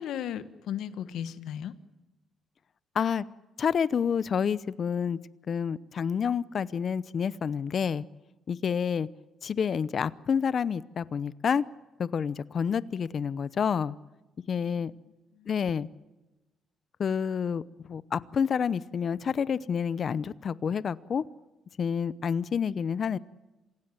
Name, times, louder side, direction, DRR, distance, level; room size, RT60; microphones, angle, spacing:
voice 1, 0.0-1.8 14.6-15.0 15.3-15.8, left 9 dB, 80° left, 13 dB, 1.3 m, -37 dB
voice 2, 2.9-3.2 3.6-5.2 5.5-8.0 8.5-9.1 9.4-11.6 12.0-13.9 14.5-14.9 15.5-15.9 17.0-17.6 17.9-21.2 21.8-23.2, left 7 dB, 50° left, 18 dB, 0.8 m, -28 dB
27.0 x 16.5 x 9.1 m, 1.1 s
cardioid pair, 90°, 0 cm